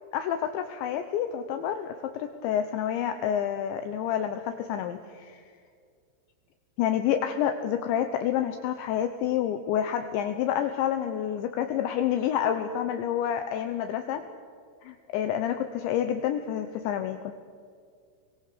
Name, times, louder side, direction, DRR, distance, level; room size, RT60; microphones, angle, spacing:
voice 1, 0.1-5.4 6.8-14.2 14.8-17.3, left 9 dB, 75° left, 7 dB, 2.9 m, -28 dB
26.5 x 23.0 x 6.8 m, 2.1 s
omnidirectional pair, 5.9 m